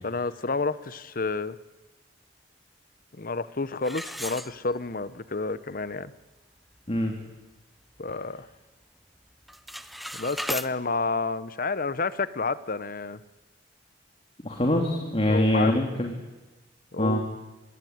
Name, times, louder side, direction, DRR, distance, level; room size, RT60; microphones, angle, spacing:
voice 1, 0.0-1.6 3.1-6.1 8.0-8.5 10.1-13.2 15.3-15.7 16.9-17.2, left 3 dB, 50° left, 15 dB, 1.0 m, -30 dB
sound 1, 3.8-5.1 5.5-5.6 6.2-6.3 6.7-7.0 7.4-8.5 8.8-9.2 9.4-10.7, equal, ahead, 0.9 m, -36 dB
voice 2, 14.4-16.2 17.0-17.2, left 1 dB, 35° left, 2 dB, 2.8 m, -24 dB
25.0 x 21.5 x 9.5 m, 1.1 s
head